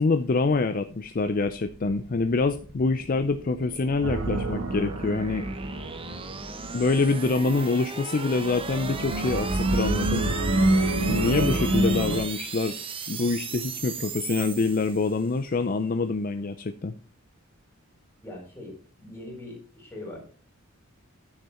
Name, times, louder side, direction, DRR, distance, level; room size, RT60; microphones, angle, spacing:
voice 1, 0.0-5.5 6.7-10.4 11.1-12.8 13.1-17.0, left 3 dB, 40° left, 10 dB, 0.5 m, -26 dB
sound 1, 0.9-15.4, right 5 dB, 25° right, 0.9 m, -37 dB
sound 2, 4.0-6.8 8.4-12.2, right 1 dB, 65° right, 1.4 m, -27 dB
voice 2, 18.2-20.3, left 1 dB, 10° left, -1 dB, 4.0 m, -42 dB
9.9 x 6.8 x 4.3 m, 0.39 s
head